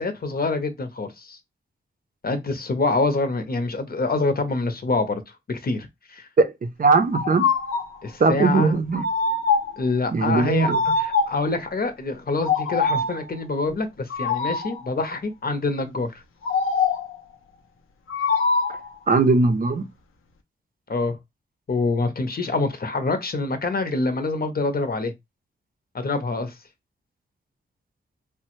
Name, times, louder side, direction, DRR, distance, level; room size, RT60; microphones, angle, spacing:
voice 1, 0.0-1.4 2.2-5.2 5.5-6.3 8.0-8.8 9.8-16.1 20.9-21.2 21.7-25.1 25.9-26.5, left 3 dB, 45° left, 0.8 m, -26 dB
voice 2, 6.4-7.5 8.2-9.0 10.1-10.8 19.1-19.9, right 3 dB, 40° right, 0.6 m, -20 dB
sound 1, 7.1-8.0 8.9-9.8 10.6-11.5 12.4-13.2 14.1-14.8 16.4-17.2 18.1-18.9, left 4 dB, 80° left, 0.6 m, -23 dB
3.2 x 2.1 x 3.0 m
cardioid pair, 60°, 21 cm